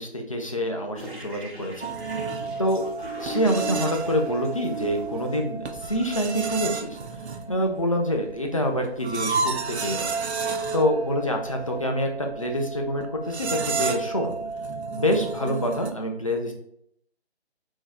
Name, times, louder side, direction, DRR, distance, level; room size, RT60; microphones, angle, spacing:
voice 1, 0.0-2.3 2.6-2.8 3.2-7.0 7.5-10.1 10.7-14.3 15.0-16.5, equal, 30° left, 2 dB, 0.4 m, -26 dB
sound 1, 0.9-5.5 6.5-6.6 7.1-7.2 7.5-7.9 8.3-8.7 9.0-11.4, right 3 dB, 50° right, 1.4 m, -39 dB
sound 2, 1.8-15.9, right 4 dB, 80° right, 0.5 m, -32 dB
5.3 x 2.6 x 2.2 m, 0.70 s
figure-of-eight pair, 150°, 33 cm